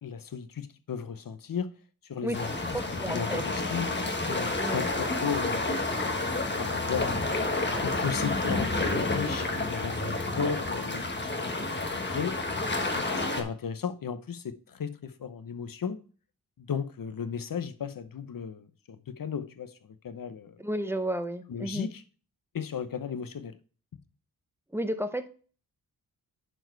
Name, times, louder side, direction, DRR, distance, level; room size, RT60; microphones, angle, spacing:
voice 1, 0.0-1.7 2.0-2.8 3.1-3.9 4.3-5.9 6.6-7.2 7.8-11.8 12.1-12.4 12.8-16.0 16.6-20.6 21.5-22.0 22.5-23.6, left 7 dB, 60° left, 0.8 m, -35 dB
sound 1, 2.3-13.4, left 2 dB, 30° left, 1.4 m, -30 dB
voice 2, 2.7-3.4 4.6-4.9 20.6-21.9 24.7-25.3, right 1 dB, 5° right, 0.7 m, -32 dB
10.5 x 4.5 x 4.6 m
wide cardioid pair, 120°, 39 cm